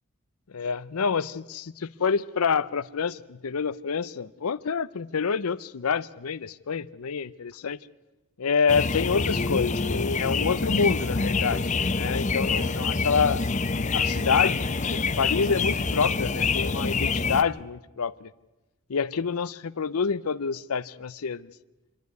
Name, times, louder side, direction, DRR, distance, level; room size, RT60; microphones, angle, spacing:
voice 1, 0.5-7.8 8.4-13.4 13.9-14.7 14.9-18.3 18.9-21.5, left 5 dB, 85° left, 0.6 m, -27 dB
sound 1, 8.7-17.4, left 4 dB, 35° left, 0.7 m, -26 dB
27.5 x 11.5 x 9.4 m
head